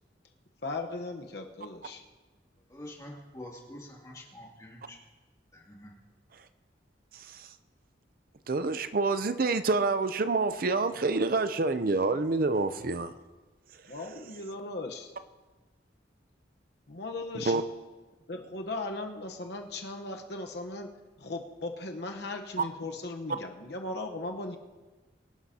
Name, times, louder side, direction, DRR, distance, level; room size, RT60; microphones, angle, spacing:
voice 1, 0.6-2.0 13.9-15.1 16.9-17.5 18.3-20.9 21.2-24.6, left 2 dB, 60° left, 3 dB, 1.0 m, -37 dB
voice 2, 2.7-4.9 5.5-5.9, left 1 dB, 20° left, -3 dB, 2.6 m, -46 dB
voice 3, 7.1-7.6 8.5-13.1 13.7-13.9 17.3-17.6, right 3 dB, 50° right, 11 dB, 0.5 m, -28 dB
24.0 x 11.5 x 2.8 m, 1.2 s
head